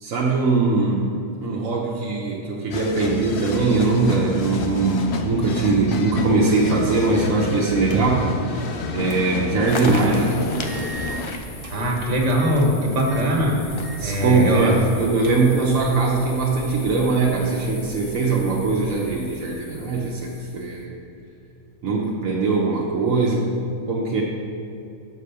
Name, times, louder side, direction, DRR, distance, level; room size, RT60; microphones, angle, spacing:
voice 1, 0.0-8.7 8.9-10.5 14.0-21.0 21.8-23.5 23.9-24.2, right 3 dB, 85° right, -3 dB, 1.2 m, -21 dB
sound 1, 2.7-11.3, left 3 dB, 65° left, 0.8 m, -29 dB
sound 2, 7.8-8.4 9.1-9.3 9.7-9.8 10.7-11.8 12.3-12.7 13.0-13.3 13.7-14.0 14.4-14.5 14.9-15.7, right 3 dB, 30° right, 0.8 m, -34 dB
sound 3, 9.7-20.8, left 2 dB, 40° left, 0.4 m, -37 dB
voice 2, 11.7-13.6 14.0-14.8, equal, 65° right, -1 dB, 1.7 m, -21 dB
6.8 x 4.9 x 6.8 m, 2.7 s
omnidirectional pair, 1.4 m